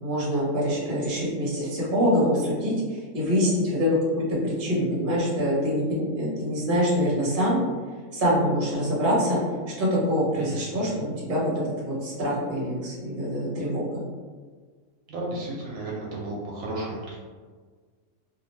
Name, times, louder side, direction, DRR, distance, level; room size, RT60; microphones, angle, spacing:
voice 1, 0.0-7.6 8.1-9.4 9.8-11.5 11.8-14.0, equal, 40° right, -6 dB, 0.9 m, -25 dB
voice 2, 10.4-10.9 15.1-17.2, right 2 dB, 75° right, -4 dB, 1.0 m, -34 dB
2.7 x 2.1 x 2.9 m, 1.5 s
omnidirectional pair, 1.5 m